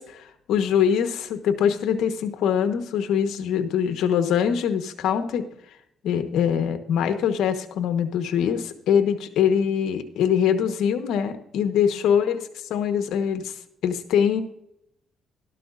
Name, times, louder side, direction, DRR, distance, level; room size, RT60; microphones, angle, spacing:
voice 1, 0.0-5.4 6.0-12.4 12.7-13.5 13.8-14.4, left 8 dB, 85° left, 8 dB, 1.2 m, -23 dB
13.0 x 12.5 x 2.6 m, 0.75 s
cardioid pair, 90°, 0 cm